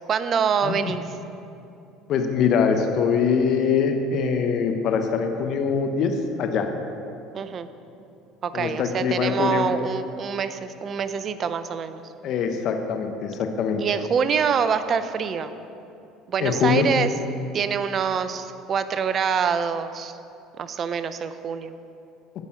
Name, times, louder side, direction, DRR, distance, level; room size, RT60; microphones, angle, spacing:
voice 1, 0.1-1.2 7.3-7.7 8.4-12.0 13.8-15.5 16.3-17.1 17.5-20.2 20.6-21.7, right 6 dB, 45° right, 11 dB, 0.5 m, -25 dB
voice 2, 0.6-0.9 2.1-6.7 8.5-9.7 12.2-13.8 16.4-16.9, left 6 dB, 55° left, 5 dB, 0.8 m, -23 dB
9.1 x 5.2 x 6.2 m, 2.7 s
hypercardioid pair, 70°, 0 cm